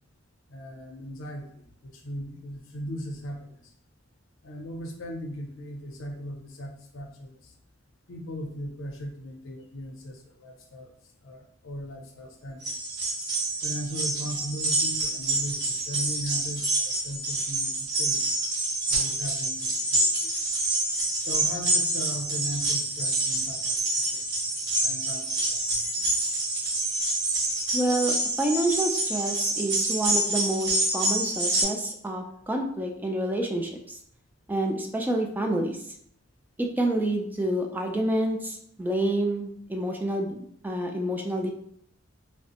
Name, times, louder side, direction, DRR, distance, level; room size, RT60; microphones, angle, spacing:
voice 1, 0.5-3.6 4.4-7.4 8.1-10.9 11.2-12.7 13.6-18.2 18.9-20.3 21.3-24.2 24.8-25.6 26.0-26.4, equal, 85° left, 3 dB, 0.5 m, -38 dB
sound 1, 12.6-31.6, right 2 dB, 60° right, 1.1 m, -27 dB
voice 2, 27.7-34.0 34.5-35.8 36.6-41.5, right 1 dB, 10° right, 2 dB, 0.3 m, -28 dB
3.1 x 2.0 x 2.8 m, 0.65 s
head